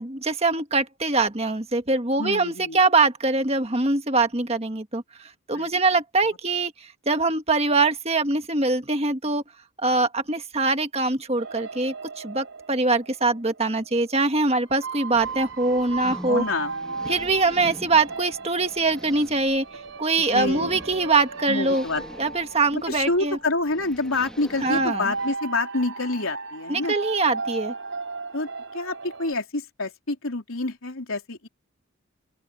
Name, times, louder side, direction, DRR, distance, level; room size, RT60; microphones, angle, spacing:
voice 1, 0.0-9.4 9.8-16.4 17.0-19.6 20.0-21.8 22.2-23.4 24.6-25.1 26.7-27.7, right 3 dB, 30° right, 1.6 m, -23 dB
voice 2, 2.2-2.8 5.5-5.8 16.3-17.2 20.2-20.7 21.5-22.0 22.7-26.9 28.3-31.5, left 2 dB, 75° left, 3.5 m, -28 dB
sound 1, 11.4-13.9 14.7-29.3, right 4 dB, 65° right, 6.7 m, -36 dB
sound 2, 15.1-25.4, equal, 5° left, 2.1 m, -44 dB
open air
head